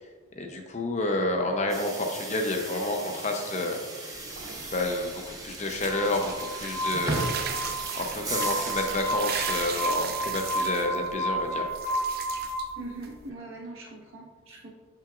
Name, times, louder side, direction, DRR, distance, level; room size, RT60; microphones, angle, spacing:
voice 1, 0.4-4.2 4.6-7.3 8.0-11.7, left 2 dB, 35° left, 3 dB, 0.6 m, -30 dB
sound 1, 1.7-9.5, right 2 dB, 15° right, 0.8 m, -37 dB
sound 2, 4.1-13.3, right 7 dB, 45° right, 0.4 m, -37 dB
Glass, 5.9-12.6, right 1 dB, 60° left, 1.4 m, -32 dB
voice 2, 12.8-14.7, right 2 dB, 70° right, -2 dB, 1.4 m, -41 dB
7.0 x 5.7 x 2.4 m, 1.3 s
head